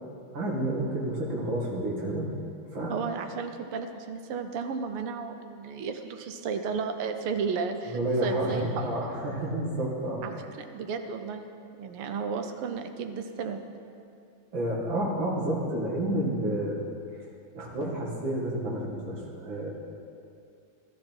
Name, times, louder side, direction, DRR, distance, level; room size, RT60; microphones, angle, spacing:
voice 1, 0.3-2.3 2.7-3.0 7.9-10.2 14.5-16.8 17.5-19.7, right 1 dB, 60° right, -3 dB, 2.7 m, -30 dB
voice 2, 2.9-8.9 10.2-11.5 11.8-13.6, right 5 dB, 85° right, 7 dB, 1.8 m, -33 dB
13.0 x 12.5 x 4.5 m, 2.5 s
omnidirectional pair, 2.4 m